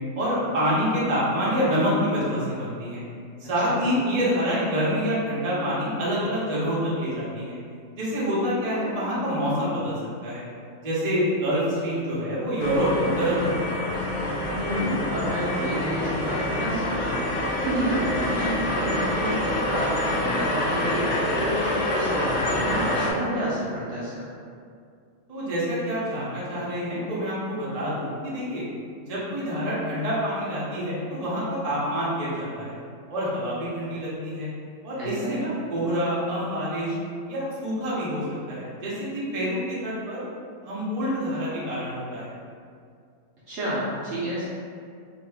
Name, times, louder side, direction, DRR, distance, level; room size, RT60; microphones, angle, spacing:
voice 1, 0.2-3.0 3.4-7.6 8.0-9.9 10.2-10.5 10.8-13.9 25.3-28.6 29.0-32.8 33.1-34.5 34.8-37.0 37.3-38.2 38.5-40.2 40.6-42.3, equal, 35° right, -8 dB, 0.7 m, -27 dB
sound 1, 12.6-23.1, left 1 dB, 70° left, 0.6 m, -26 dB
voice 2, 14.5-17.2 17.6-24.3 35.0-35.4 43.5-44.5, right 1 dB, 60° right, -9 dB, 0.9 m, -30 dB
2.8 x 2.6 x 3.4 m, 2.3 s
omnidirectional pair, 1.5 m